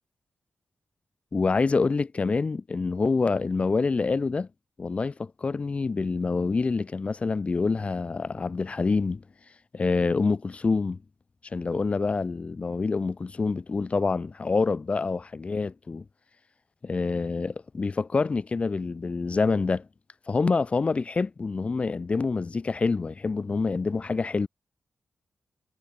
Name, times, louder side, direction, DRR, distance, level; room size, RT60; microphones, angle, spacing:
voice 1, 1.3-4.5 4.8-9.2 9.7-11.0 11.5-16.0 16.8-19.9 20.3-24.5, left 4 dB, 35° left, 1.6 m, -26 dB
wide cardioid pair, 130°, 4 cm